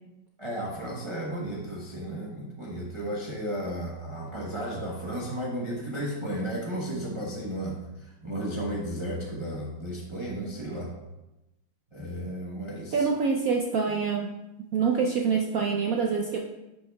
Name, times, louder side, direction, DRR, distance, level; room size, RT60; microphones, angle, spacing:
voice 1, 0.4-10.9 11.9-13.1, right 1 dB, 25° right, -4 dB, 0.6 m, -34 dB
voice 2, 12.9-14.3 14.7-16.4, right 5 dB, 70° right, 1 dB, 0.8 m, -25 dB
9.9 x 6.6 x 2.2 m, 0.96 s
omnidirectional pair, 2.1 m